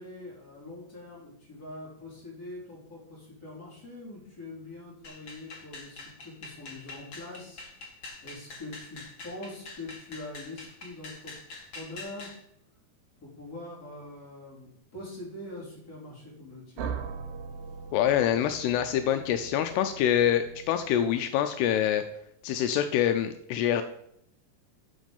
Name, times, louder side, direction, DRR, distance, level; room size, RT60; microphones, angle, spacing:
voice 1, 0.0-7.6 8.2-12.3 13.2-17.0, left 2 dB, 20° left, -5 dB, 4.1 m, -43 dB
sound 1, 5.0-12.4, left 3 dB, 45° left, 1.6 m, -45 dB
sound 2, 16.8-21.5, right 6 dB, 70° right, 2.7 m, -41 dB
voice 2, 17.9-22.0 22.4-23.8, left 10 dB, 85° left, 8 dB, 2.6 m, -25 dB
12.5 x 6.2 x 5.4 m, 0.74 s
omnidirectional pair, 4.8 m